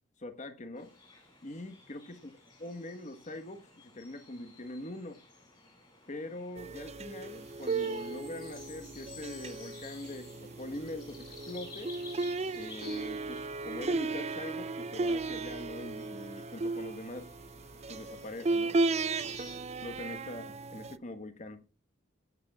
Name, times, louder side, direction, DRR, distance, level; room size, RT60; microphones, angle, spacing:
voice 1, 0.2-0.9 1.4-2.3 2.6-5.2 6.1-11.9 12.5-17.3 17.9-18.8 19.5-21.6, left 1 dB, 40° left, 1.4 m, -43 dB
sound 1, 0.8-19.6, left 3 dB, 20° left, 7.3 m, -54 dB
sound 2, 6.6-21.0, right 3 dB, 35° right, 0.5 m, -35 dB
16.5 x 9.5 x 2.4 m
head